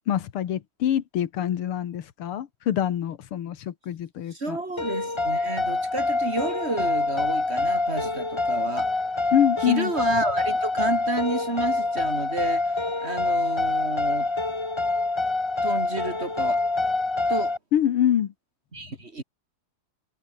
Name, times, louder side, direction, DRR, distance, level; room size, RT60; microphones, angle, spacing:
voice 1, 0.1-4.6 9.3-9.9 17.7-18.3, left 10 dB, 80° left, 2.2 m, -25 dB
voice 2, 4.3-9.0 9.6-12.8 13.0-14.3 15.6-16.6 17.3-17.5 18.7-19.2, right 2 dB, 30° right, 2.7 m, -31 dB
sound 1, 4.8-17.6, left 3 dB, 15° left, 1.1 m, -26 dB
omnidirectional pair, 2.4 m